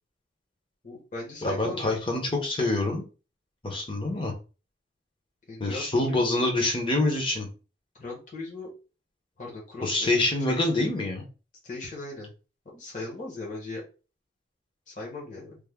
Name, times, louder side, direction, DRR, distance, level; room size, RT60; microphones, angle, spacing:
voice 1, 0.8-2.1 5.5-6.7 8.0-8.7 9.4-10.1 10.5-10.9 11.6-12.3 12.7-13.8 14.9-15.6, left 2 dB, 40° left, -4 dB, 1.1 m, -39 dB
voice 2, 1.4-3.0 3.6-4.3 5.6-7.5 9.8-11.2, left 2 dB, 25° left, 2 dB, 0.7 m, -26 dB
3.4 x 2.1 x 3.5 m, 0.34 s
head